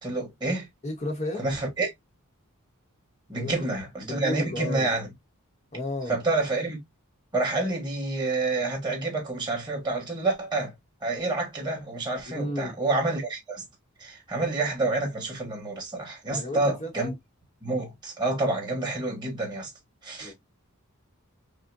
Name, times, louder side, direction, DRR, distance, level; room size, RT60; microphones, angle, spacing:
voice 1, 0.0-0.7 1.4-1.9 3.3-5.1 6.1-6.8 7.3-10.7 11.0-13.6 14.0-17.1 17.6-19.7 20.0-20.3, right 2 dB, 20° right, 1.5 m, -28 dB
voice 2, 0.8-1.5 3.3-3.5 4.0-4.9 5.7-6.2 12.3-12.8 16.3-17.1 20.2-20.3, left 1 dB, 30° left, 0.9 m, -33 dB
5.1 x 2.1 x 2.5 m
head